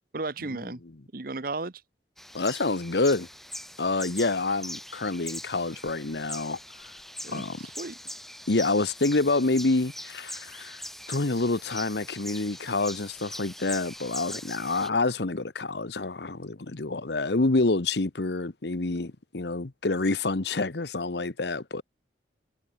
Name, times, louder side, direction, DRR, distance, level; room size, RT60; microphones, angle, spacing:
voice 1, 0.1-0.8 1.1-1.8 7.2-8.0, right 3 dB, 55° right, 1.0 m, -34 dB
sound 1, 2.2-14.9, left 1 dB, ahead, 1.6 m, -42 dB
voice 2, 2.3-3.3 3.8-6.6 7.3-7.6 8.5-10.8 11.1-21.8, left 3 dB, 70° left, 1.1 m, -27 dB
head